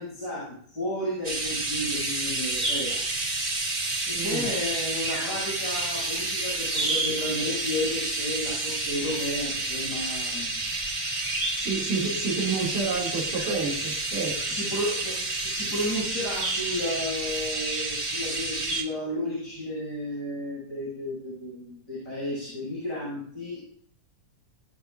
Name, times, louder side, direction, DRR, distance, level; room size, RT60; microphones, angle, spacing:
voice 1, 0.0-3.0 4.1-10.6 14.4-23.6, left 1 dB, 30° left, -8 dB, 8.3 m, -33 dB
sound 1, 1.2-18.8, right 2 dB, 20° right, 1.5 m, -29 dB
voice 2, 4.1-4.5 11.5-14.4, right 4 dB, 75° right, -3 dB, 4.5 m, -29 dB
22.0 x 12.0 x 2.7 m, 0.63 s
omnidirectional pair, 3.7 m